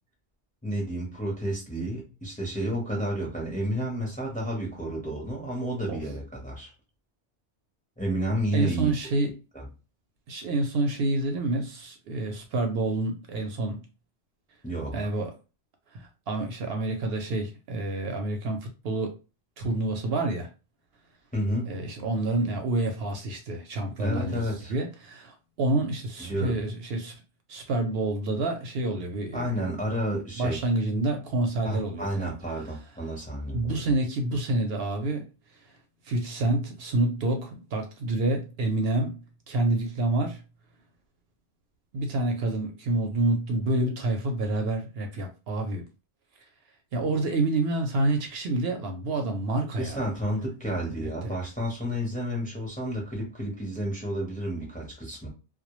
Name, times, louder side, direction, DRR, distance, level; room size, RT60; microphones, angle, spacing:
voice 1, 0.6-6.7 8.0-8.9 9.5-9.7 14.6-15.1 21.3-21.9 24.0-24.7 26.2-26.6 29.3-30.6 31.6-33.9 49.8-55.3, equal, 10° left, 0.6 m, -31 dB
voice 2, 8.5-9.4 10.3-13.8 14.9-15.3 15.9-19.1 19.6-20.5 21.7-27.2 27.5-29.5 30.4-32.3 33.5-35.3 36.1-39.2 39.5-40.4 41.9-45.8 46.9-50.0 50.9-51.3, right 2 dB, 65° right, 0.7 m, -28 dB
2.1 x 2.1 x 2.9 m
omnidirectional pair, 1.1 m